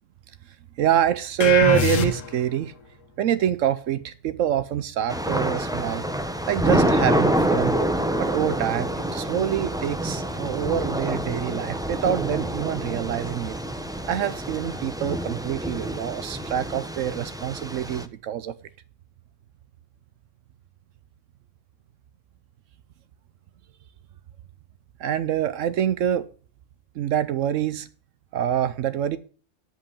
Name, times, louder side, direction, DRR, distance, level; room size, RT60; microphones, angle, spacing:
voice 1, 0.8-2.7 3.2-6.0 6.5-7.8 8.2-13.6 14.1-18.5 25.0-26.3 27.0-27.9 28.3-29.2, right 10 dB, 80° right, 1.0 m, -25 dB
sound 1, 1.4-2.6, left 6 dB, 80° left, 1.5 m, -23 dB
Thunder / Rain, 5.1-18.1, right 1 dB, 5° right, 0.6 m, -27 dB
10.5 x 5.5 x 8.5 m
omnidirectional pair, 1.3 m